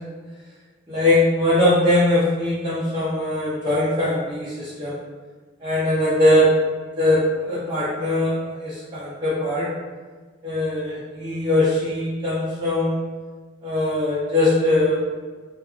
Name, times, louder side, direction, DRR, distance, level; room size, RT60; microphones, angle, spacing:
voice 1, 0.9-5.0 5.6-6.5 7.0-9.7 10.4-12.9 13.6-15.0, left 1 dB, 25° right, -10 dB, 0.6 m, -21 dB
2.8 x 2.4 x 2.3 m, 1.4 s
head